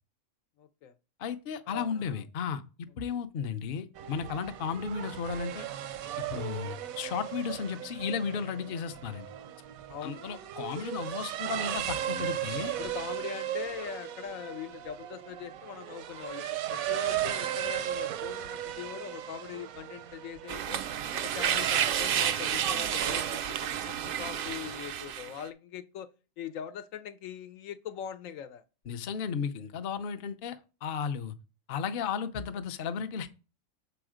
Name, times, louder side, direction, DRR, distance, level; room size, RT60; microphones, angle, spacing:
voice 1, 0.6-0.9 1.7-2.2 9.9-10.2 12.6-20.8 21.1-26.1 26.4-28.6, left 9 dB, 75° left, 1.0 m, -42 dB
voice 2, 1.2-2.6 3.0-5.6 6.3-9.3 10.0-12.7 28.9-31.3 31.7-33.3, left 6 dB, 50° left, 0.7 m, -34 dB
sound 1, 4.0-23.4, right 12 dB, 85° right, 1.0 m, -36 dB
sound 2, 20.5-25.4, right 9 dB, 65° right, 0.5 m, -30 dB
7.0 x 4.4 x 4.9 m
omnidirectional pair, 1.4 m